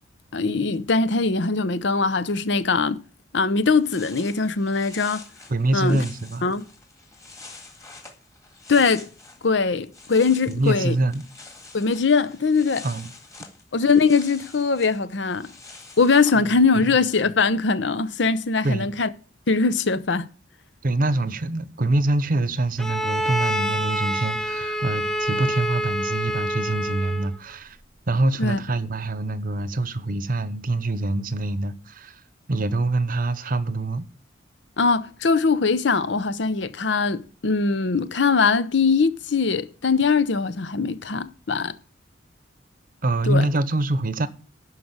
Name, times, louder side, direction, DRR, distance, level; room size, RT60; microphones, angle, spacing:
voice 1, 0.3-3.0 3.3-5.3 5.7-6.0 6.4-6.6 8.7-9.1 9.4-11.0 11.7-12.9 13.7-15.5 16.0-19.1 19.5-20.3 28.4-28.6 34.8-41.7 43.2-43.5, left 4 dB, 70° left, 0.7 m, -21 dB
sound 1, 3.6-9.5 9.8-16.4, left 3 dB, 20° left, 1.9 m, -46 dB
voice 2, 5.5-6.5 10.5-11.2 12.8-13.1 16.8-16.9 18.6-18.9 20.8-27.8 28.1-32.1 32.5-34.0 43.0-44.3, right 2 dB, 50° right, 0.8 m, -25 dB
Bowed string instrument, 22.8-27.4, equal, 5° left, 0.7 m, -27 dB
11.5 x 4.9 x 8.1 m
head